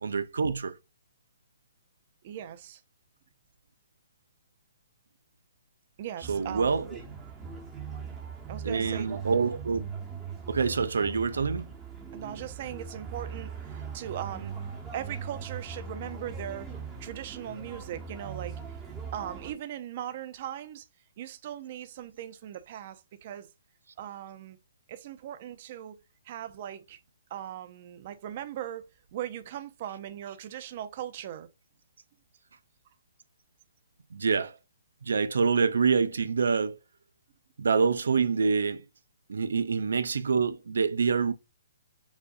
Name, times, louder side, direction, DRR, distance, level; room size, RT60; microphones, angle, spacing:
voice 1, 0.0-0.8 6.3-7.0 8.6-9.8 10.5-11.7 34.1-34.6 35.0-36.8 37.6-38.8 39.3-41.3, right 5 dB, 85° right, 0.5 m, -26 dB
voice 2, 2.2-2.8 6.0-6.9 8.5-9.2 12.1-14.5 14.9-16.7 17.0-18.8 19.1-20.9 21.2-23.5 24.0-24.6 24.9-26.0 26.2-27.0 27.3-31.5, right 11 dB, 40° right, 0.6 m, -39 dB
sound 1, 6.2-19.5, right 5 dB, 10° right, 1.1 m, -40 dB
7.0 x 2.6 x 2.6 m
hypercardioid pair, 160°, 0 cm